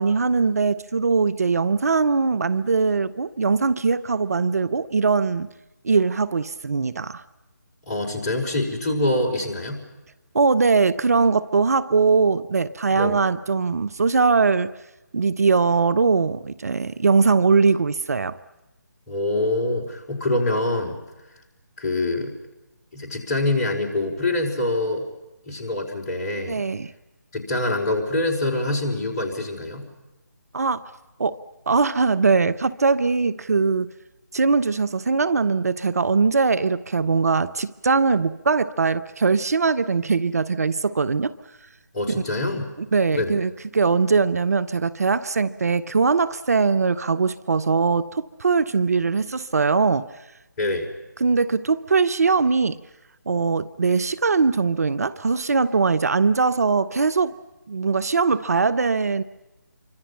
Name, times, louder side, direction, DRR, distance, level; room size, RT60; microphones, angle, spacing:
voice 1, 0.0-5.5 5.8-7.2 10.3-14.7 15.1-18.4 26.5-26.9 30.5-30.8 31.2-31.4 31.7-33.9 34.3-41.3 42.9-50.1 51.2-52.8 53.3-57.3 57.7-59.2, right 4 dB, 55° right, 15 dB, 0.8 m, -21 dB
voice 2, 7.9-9.8 12.9-13.2 19.1-21.0 21.8-22.3 22.9-25.0 25.5-26.6 27.3-29.8 41.9-42.7 43.1-43.4 50.6-50.9, left 2 dB, 25° left, -1 dB, 4.7 m, -25 dB
28.0 x 25.0 x 5.6 m, 1.0 s
figure-of-eight pair, 150°, 10 cm